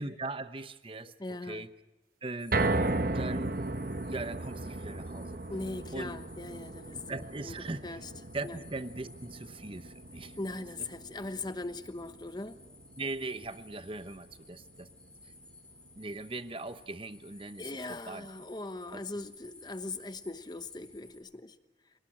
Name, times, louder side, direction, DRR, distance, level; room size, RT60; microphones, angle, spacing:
voice 1, 0.0-1.1 1.4-1.7 2.2-2.6 3.1-3.5 4.1-5.4 5.9-6.1 6.9-8.0 8.3-10.4 13.0-14.9 16.0-18.3 18.9-19.0, right 2 dB, 30° right, 12 dB, 0.9 m, -40 dB
voice 2, 1.2-1.6 5.5-7.6 7.8-8.0 8.4-8.6 10.4-12.6 17.6-21.5, left 2 dB, 25° left, 11 dB, 1.1 m, -40 dB
sound 1, 2.4-21.2, left 3 dB, 5° left, 4.4 m, -56 dB
sound 2, 2.5-14.8 15.2-15.3 15.7-15.8, right 2 dB, 55° right, 1.1 m, -36 dB
28.0 x 18.5 x 8.9 m, 1.0 s
head